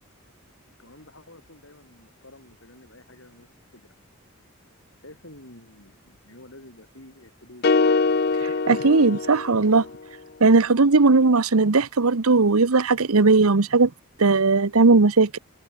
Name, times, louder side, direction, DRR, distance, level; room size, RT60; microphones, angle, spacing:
voice 1, 0.8-3.9 5.0-7.7, left 1 dB, 65° left, 6.8 m, -49 dB
sound 1, 7.6-10.0, left 4 dB, 45° left, 0.6 m, -23 dB
voice 2, 8.4-9.9 10.4-13.9 14.2-15.4, right 3 dB, 85° right, 1.0 m, -18 dB
head